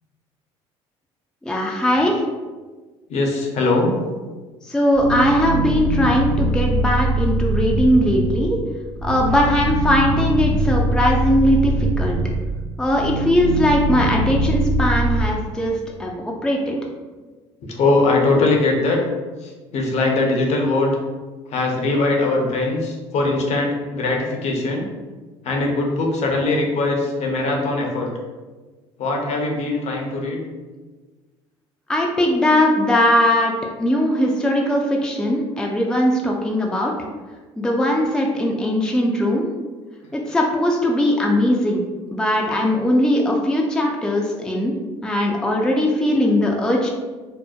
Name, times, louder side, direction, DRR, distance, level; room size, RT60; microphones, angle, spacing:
voice 1, 1.4-2.2 4.6-8.6 9.0-12.2 12.8-16.8 31.9-33.5 33.8-36.9 37.6-39.5 40.1-41.8 42.1-44.7 45.0-46.9, left 1 dB, 5° left, -1 dB, 0.3 m, -19 dB
voice 2, 3.1-3.9 10.5-10.6 17.7-19.0 19.4-20.9 21.5-24.9 25.4-28.1 29.0-30.4, left 2 dB, 55° left, 0 dB, 0.6 m, -21 dB
sound 1, 4.9-15.3, right 2 dB, 75° right, 0.5 m, -22 dB
2.6 x 2.0 x 2.3 m, 1.3 s
supercardioid pair, 70°, 14 cm